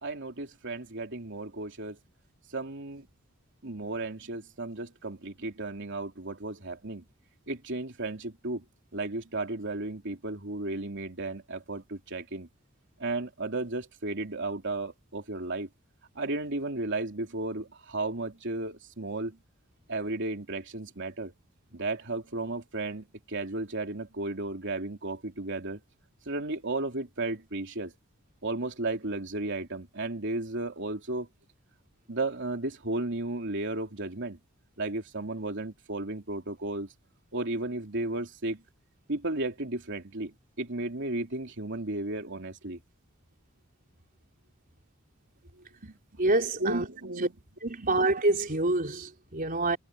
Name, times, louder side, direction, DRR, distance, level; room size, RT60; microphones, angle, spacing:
voice 1, 0.0-2.0 2.5-3.1 3.6-7.0 7.5-8.6 8.9-12.5 13.0-15.7 16.1-19.4 19.9-21.3 21.7-25.8 26.2-27.9 28.4-31.3 32.1-34.4 34.8-36.9 37.3-38.6 39.1-42.8 45.8-46.0 46.6-47.3 47.8-48.0, right 2 dB, 60° right, 3.3 m, -34 dB
voice 2, 46.2-46.8 47.6-49.8, right 2 dB, 45° right, 4.1 m, -26 dB
head